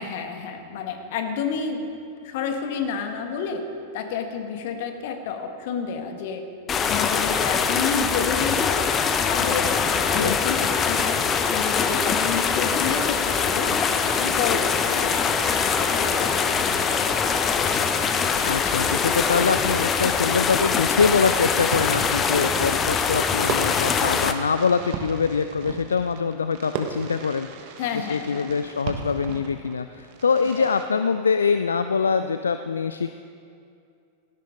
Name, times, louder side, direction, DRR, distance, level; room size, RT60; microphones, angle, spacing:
voice 1, 0.0-1.8 2.2-3.6 3.9-6.4 6.8-8.9 9.2-11.1 11.5-13.7 14.1-16.5 16.9-17.0 27.8-28.5 30.6-30.7, left 6 dB, 50° left, 5 dB, 1.8 m, -30 dB
sound 1, 6.7-24.3, left 6 dB, 25° left, 1.0 m, -23 dB
Fireworks, 11.0-30.8, right 6 dB, 45° right, 1.6 m, -39 dB
voice 2, 18.4-33.1, left 5 dB, 70° left, 10 dB, 0.4 m, -24 dB
17.5 x 17.0 x 3.9 m, 2.5 s
figure-of-eight pair, 90°, 0 cm